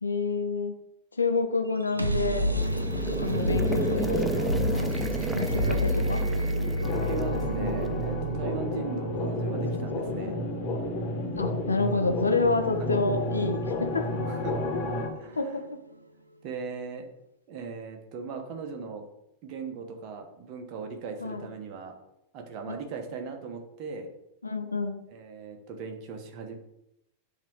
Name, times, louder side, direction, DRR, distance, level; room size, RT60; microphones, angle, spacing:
voice 1, 0.0-0.7 1.2-2.5 3.1-4.9 5.3-6.2 11.4-14.1 15.3-15.7 21.2-21.5 22.7-22.8 24.4-25.0, left 3 dB, 80° left, 5 dB, 0.7 m, -28 dB
sound 1, 1.7-15.5, equal, 85° right, 0.5 m, -31 dB
sound 2, 2.0-8.1, right 1 dB, 5° right, 0.4 m, -33 dB
voice 2, 5.5-5.8 6.7-10.4 14.3-14.6 15.1-15.4 16.4-17.1 17.5-19.0 19.4-21.9 22.3-24.1 25.1-26.5, right 5 dB, 40° right, 4 dB, 1.1 m, -38 dB
sound 3, 6.8-15.1, left 1 dB, 35° left, 1.5 m, -31 dB
7.2 x 3.0 x 4.8 m, 0.84 s
figure-of-eight pair, 90°, 0 cm